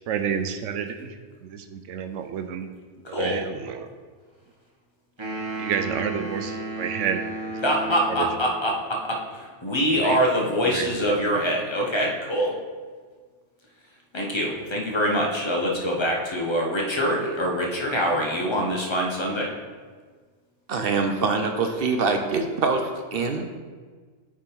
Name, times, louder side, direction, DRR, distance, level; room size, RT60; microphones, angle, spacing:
voice 1, 0.1-1.2 1.4-2.7 3.0-3.9 5.6-7.6 8.1-8.3 9.9-10.2 10.7-11.1, right 7 dB, 80° right, 8 dB, 0.9 m, -30 dB
voice 2, 3.0-3.4 7.6-12.6 14.1-19.5, equal, 25° left, -1 dB, 1.0 m, -24 dB
sound 1, 5.2-8.5, right 2 dB, 25° right, 1.3 m, -33 dB
voice 3, 20.7-23.6, right 4 dB, 60° right, 5 dB, 0.7 m, -24 dB
8.6 x 3.6 x 4.5 m, 1.5 s
omnidirectional pair, 1.3 m